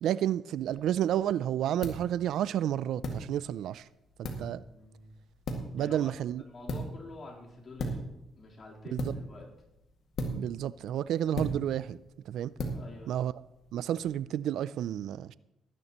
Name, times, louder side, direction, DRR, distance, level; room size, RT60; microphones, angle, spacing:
voice 1, 0.0-3.9 4.2-4.6 5.7-6.4 8.9-9.2 10.3-12.0 12.3-12.5 13.1-13.3 13.7-15.3, right 11 dB, 80° right, 0.3 m, -31 dB
sound 1, 0.6-14.1, equal, 65° left, 2.0 m, -40 dB
voice 2, 4.5-5.1 5.8-8.0 8.3-9.5 12.7-13.1, left 2 dB, 45° left, 3.6 m, -48 dB
18.5 x 10.5 x 3.0 m
cardioid pair, 90°, 0 cm